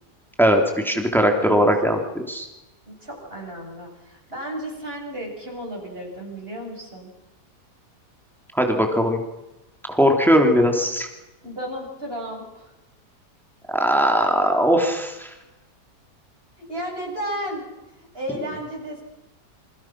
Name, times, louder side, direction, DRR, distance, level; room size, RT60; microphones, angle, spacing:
voice 1, 0.4-2.5 8.5-9.2 9.9-11.1 13.7-15.3, equal, ahead, 3 dB, 3.3 m, -19 dB
voice 2, 1.4-2.0 2.8-7.1 11.4-12.7 16.6-17.7 18.1-19.0, equal, 35° right, 0 dB, 8.4 m, -33 dB
29.0 x 27.0 x 6.2 m, 0.97 s
omnidirectional pair, 1.8 m